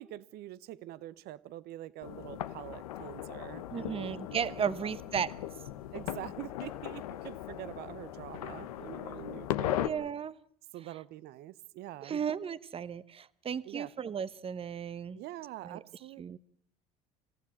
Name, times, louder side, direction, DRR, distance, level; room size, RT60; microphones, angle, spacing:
voice 1, 0.0-4.2 4.6-4.9 5.9-9.8 10.7-12.2 13.7-13.9 15.1-16.4, right 15 dB, 65° right, 1.0 m, -45 dB
sound 1, 2.0-9.9, left 12 dB, 85° left, 1.1 m, -38 dB
voice 2, 3.7-5.3 9.8-10.3 12.0-15.2 15.6-15.8 16.2-16.4, right 7 dB, 30° right, 1.0 m, -35 dB
26.5 x 15.0 x 8.7 m
hypercardioid pair, 75°, 18 cm